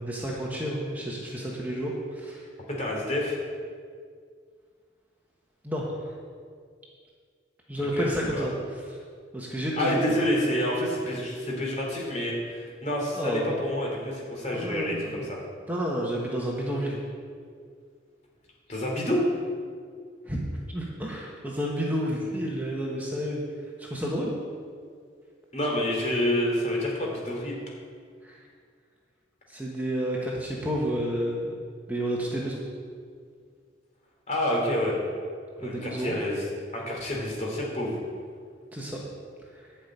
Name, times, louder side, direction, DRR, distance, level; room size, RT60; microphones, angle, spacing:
voice 1, 0.0-2.5 5.6-6.1 7.7-8.5 8.9-9.0 9.3-10.0 13.2-13.4 14.5-15.3 15.7-17.0 20.2-20.4 20.7-23.4 23.8-24.4 28.2-28.4 29.5-31.5 31.9-32.6 35.6-36.1 38.7-39.0 39.5-39.6, equal, 10° right, -3 dB, 1.2 m, -30 dB
voice 2, 2.8-3.4 8.0-8.5 9.8-15.4 18.7-19.2 25.5-27.6 34.3-35.0 35.6-36.4 36.7-38.0, left 1 dB, 40° left, -2 dB, 3.1 m, -28 dB
11.5 x 5.7 x 8.8 m, 2.1 s
head